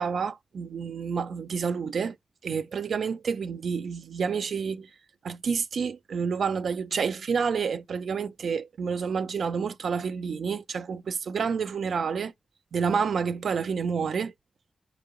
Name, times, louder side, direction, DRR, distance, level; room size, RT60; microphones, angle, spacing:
voice 1, 0.0-2.2 2.4-4.9 5.2-12.3 12.7-14.3, right 6 dB, 75° right, 0.4 m, -29 dB
4.6 x 2.9 x 3.7 m
supercardioid pair, 40°, 0 cm